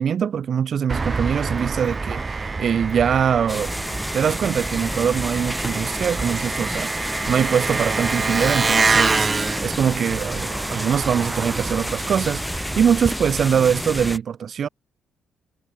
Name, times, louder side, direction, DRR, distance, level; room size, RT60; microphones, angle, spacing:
voice 1, 0.0-3.7 4.1-14.7, right 8 dB, 55° right, 3.8 m, -23 dB
Engine, 0.9-13.1, right 4 dB, 30° right, 1.1 m, -26 dB
sound 1, 3.5-14.2, equal, 5° left, 4.2 m, -30 dB
cardioid pair, 90°, 0 cm